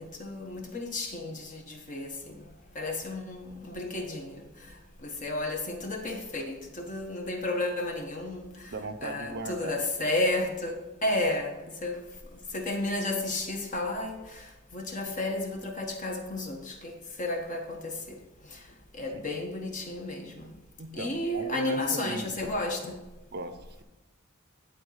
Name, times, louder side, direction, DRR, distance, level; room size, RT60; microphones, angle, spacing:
voice 1, 0.0-2.4 2.7-4.4 5.0-8.7 9.0-12.0 12.5-18.2 18.5-18.6 18.9-20.5 20.9-23.0, left 2 dB, 35° left, 1.2 m, -32 dB
voice 2, 8.7-9.8 19.1-19.3 20.8-22.3 23.3-23.8, right 2 dB, 50° right, 0.6 m, -38 dB
11.0 x 4.2 x 5.6 m
head